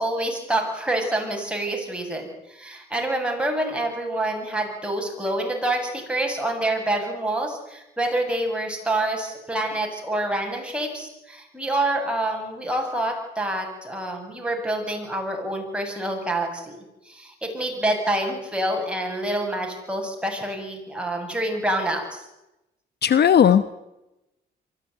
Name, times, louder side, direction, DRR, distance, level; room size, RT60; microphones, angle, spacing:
voice 1, 0.0-22.3, right 1 dB, 5° right, 1 dB, 7.9 m, -27 dB
voice 2, 23.0-23.7, left 8 dB, 55° left, 14 dB, 1.2 m, -16 dB
24.0 x 16.0 x 9.5 m, 0.92 s
cardioid pair, 90°, 20 cm